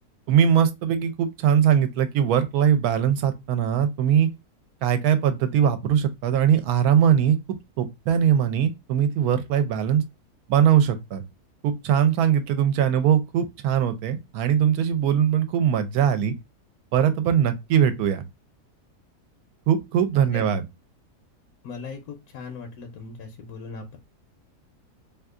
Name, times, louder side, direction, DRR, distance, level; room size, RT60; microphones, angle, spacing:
voice 1, 0.3-4.3 4.8-7.4 7.8-10.0 10.5-11.2 11.6-16.3 16.9-18.2 19.7-20.7, right 9 dB, 75° right, 1.0 m, -21 dB
voice 2, 21.6-24.0, left 4 dB, 70° left, 1.0 m, -38 dB
2.8 x 2.4 x 3.5 m
omnidirectional pair, 1.7 m